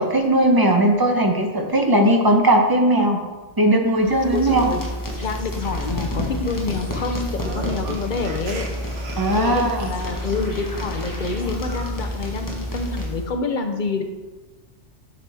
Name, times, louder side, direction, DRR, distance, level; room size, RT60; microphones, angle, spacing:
voice 1, 0.0-3.2 3.6-4.7 9.2-9.9, right 1 dB, 20° right, 2 dB, 0.7 m, -18 dB
sound 1, 4.0-13.4, left 1 dB, 15° left, 1.1 m, -29 dB
voice 2, 4.3-4.8 5.2-8.7 9.3-14.0, left 4 dB, 50° left, 5 dB, 0.7 m, -27 dB
sound 2, 7.3-10.3, right 4 dB, 80° right, 1.2 m, -36 dB
7.2 x 6.4 x 3.4 m, 1.2 s
omnidirectional pair, 1.2 m